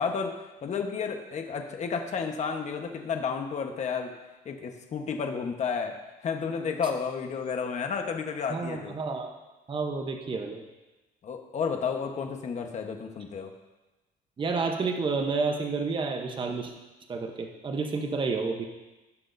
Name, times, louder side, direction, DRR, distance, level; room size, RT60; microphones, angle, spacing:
voice 1, 0.0-4.1 4.4-9.0 11.2-13.5, left 6 dB, 45° left, 4 dB, 1.2 m, -32 dB
voice 2, 8.5-9.3 9.7-10.6 14.4-16.7 17.1-18.7, right 4 dB, 30° right, 3 dB, 0.9 m, -30 dB
18.0 x 6.2 x 2.7 m, 1.1 s
cardioid pair, 110°, 17 cm